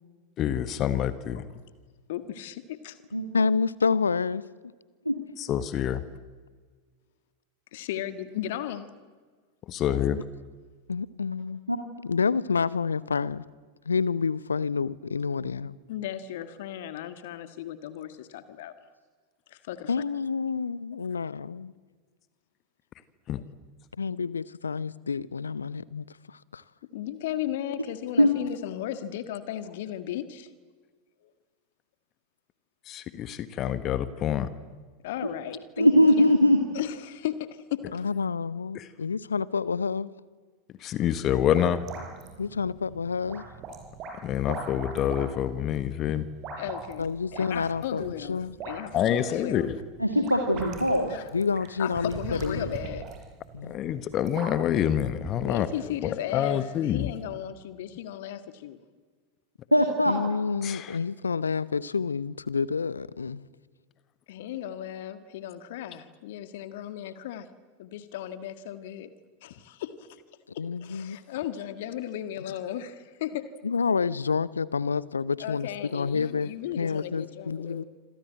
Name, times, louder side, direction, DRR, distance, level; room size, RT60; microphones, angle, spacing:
voice 1, 0.4-1.5 5.4-6.0 9.7-10.2 23.3-23.4 32.9-34.5 38.7-38.9 40.8-41.8 44.2-46.3 48.9-49.8 53.6-55.7 56.0-57.1 60.6-61.0, left 10 dB, 30° left, 1.4 m, -27 dB
voice 2, 2.1-3.0 7.7-8.9 15.9-18.7 19.5-19.9 26.9-30.5 35.0-35.9 36.2-36.3 36.7-38.1 46.6-47.1 47.3-49.7 51.1-51.3 51.8-53.0 55.4-58.8 64.3-67.5 67.8-69.1 69.4-70.2 70.5-73.5 75.4-77.9, left 11 dB, 55° left, 1.7 m, -35 dB
voice 3, 3.3-4.4 10.9-11.6 12.0-13.4 13.8-15.8 19.9-21.7 24.0-26.6 37.9-40.1 42.4-43.4 47.0-48.6 51.3-52.8 53.5-54.0 60.0-63.5 70.6-71.2 73.6-76.5 76.8-77.8, left 5 dB, 75° left, 0.9 m, -29 dB
voice 4, 35.8-36.6 50.0-51.2 59.7-60.2, equal, 90° left, 2.2 m, -20 dB
sound 1, 41.1-55.7, right 4 dB, 35° right, 6.8 m, -42 dB
27.5 x 27.0 x 7.9 m
figure-of-eight pair, 90°, 0 cm